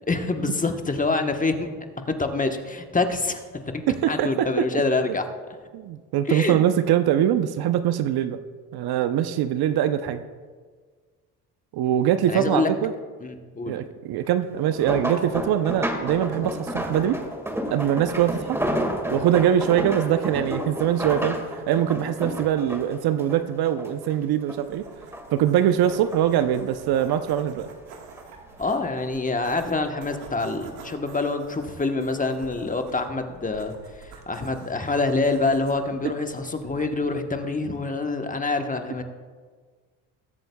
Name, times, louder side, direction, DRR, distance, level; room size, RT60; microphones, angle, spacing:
voice 1, 0.1-1.7 2.1-3.4 3.7-5.2 6.3-6.6 12.3-12.7 13.2-13.7 28.6-39.0, left 3 dB, 15° left, 6 dB, 1.1 m, -26 dB
voice 2, 3.9-4.7 5.7-8.4 8.7-10.2 11.7-12.9 13.7-17.2 17.7-18.6 19.1-24.9 25.3-27.7 36.0-36.1, right 10 dB, 55° right, 10 dB, 0.7 m, -23 dB
sound 1, 14.6-24.1 24.5-25.4 25.8-27.2 27.9-28.2 28.6-28.7, equal, 5° right, 1.8 m, -31 dB
sound 2, 24.5-37.3, right 5 dB, 80° right, 1.6 m, -47 dB
20.5 x 7.8 x 2.3 m, 1.5 s
supercardioid pair, 75°, 45 cm